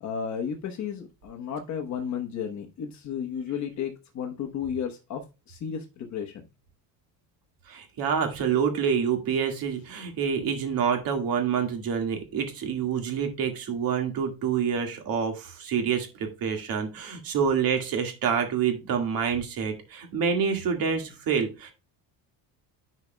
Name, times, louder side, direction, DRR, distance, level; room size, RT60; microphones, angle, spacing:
voice 1, 0.0-5.2 5.5-6.4, left 7 dB, 45° left, 1.2 m, -33 dB
voice 2, 7.7-21.7, right 7 dB, 55° right, 2.1 m, -27 dB
10.5 x 5.3 x 2.3 m
cardioid pair, 165°, 41 cm